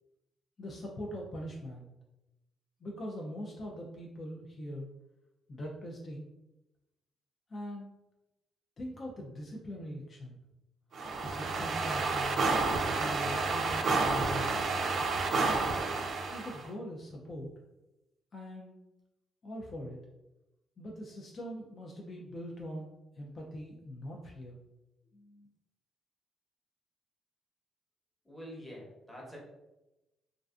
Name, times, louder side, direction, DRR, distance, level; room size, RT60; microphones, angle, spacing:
voice 1, 0.6-1.9 2.8-4.9 5.5-6.3 7.5-7.9 8.8-10.4 11.2-12.4 13.0-14.7 16.3-17.5 18.3-18.8 19.4-20.0 20.8-24.6 25.1-25.5, equal, 40° left, -1 dB, 0.4 m, -42 dB
sound 1, 10.9-16.6, right 3 dB, 60° right, 0.3 m, -30 dB
voice 2, 28.3-29.4, equal, ahead, -4 dB, 0.9 m, -46 dB
2.4 x 2.3 x 2.3 m, 0.97 s
cardioid pair, 90°, 0 cm